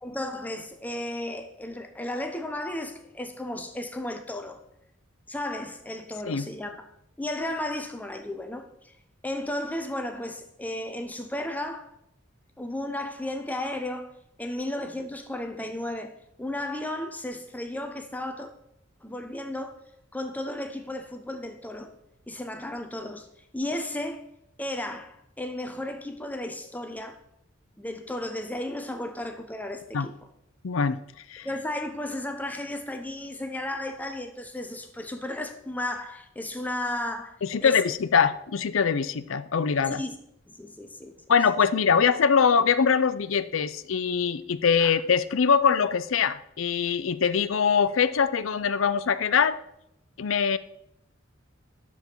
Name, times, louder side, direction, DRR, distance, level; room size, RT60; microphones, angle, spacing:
voice 1, 0.0-4.6 5.3-6.9 7.2-9.0 9.2-11.9 12.6-16.1 16.4-18.5 19.0-19.8 20.1-21.9 22.3-23.3 23.5-24.2 24.6-27.2 27.8-30.1 31.4-37.8 39.9-40.2 40.5-41.1 44.8-44.9, left 1 dB, 10° left, 0.7 m, -34 dB
voice 2, 30.6-31.0 31.3-31.5 37.4-40.0 41.3-49.6 50.2-50.6, left 6 dB, 75° left, 0.5 m, -23 dB
10.5 x 7.1 x 4.5 m
head